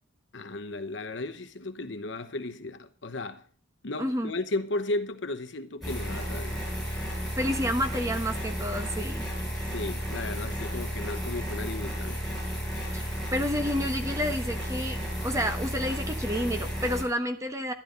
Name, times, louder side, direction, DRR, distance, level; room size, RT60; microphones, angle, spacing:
voice 1, 0.3-3.4 3.8-6.6 9.6-12.2, left 2 dB, 65° left, 1.0 m, -35 dB
voice 2, 4.0-4.3 7.3-9.3 12.9-17.7, equal, 15° right, 1.2 m, -30 dB
sound 1, 5.8-17.0, equal, ahead, 6.5 m, -33 dB
12.0 x 11.5 x 5.2 m
head